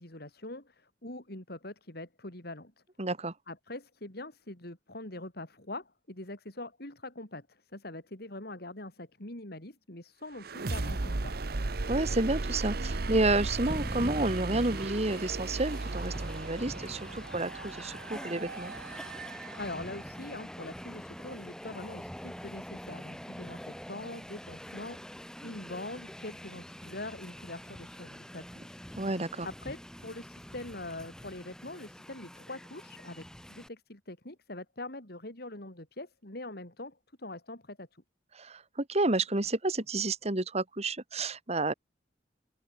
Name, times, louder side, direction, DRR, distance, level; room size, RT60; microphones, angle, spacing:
voice 1, 0.0-2.7 3.5-11.4 19.6-28.8 29.4-38.0, left 2 dB, 60° left, 4.5 m, -43 dB
voice 2, 3.0-3.3 11.9-18.7 29.0-29.5 38.3-41.7, right 2 dB, 35° right, 2.1 m, -30 dB
sound 1, 10.4-20.1, right 3 dB, 55° right, 1.0 m, -36 dB
Train, 13.7-33.7, equal, 5° left, 2.5 m, -45 dB
head